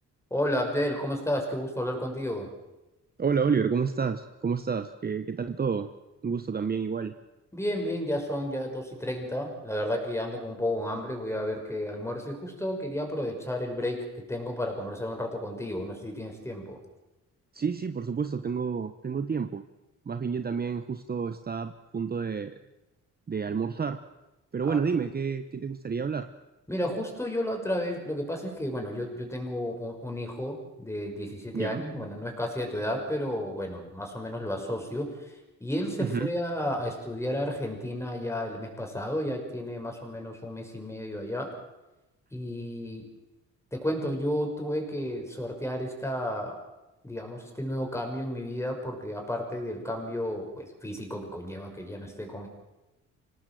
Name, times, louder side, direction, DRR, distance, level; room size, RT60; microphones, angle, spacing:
voice 1, 0.3-2.5 7.5-16.8 24.7-25.1 26.7-35.3 35.6-41.5 42.3-43.0 43.7-46.6 47.0-52.5, left 1 dB, 10° left, 3 dB, 6.2 m, -32 dB
voice 2, 3.2-5.9 6.2-7.1 17.5-19.6 20.1-22.5 23.3-24.0 24.5-26.3 31.5-31.8 36.0-36.3, right 6 dB, 30° right, 9 dB, 1.1 m, -29 dB
25.5 x 18.5 x 7.8 m, 1.0 s
cardioid pair, 90°, 30 cm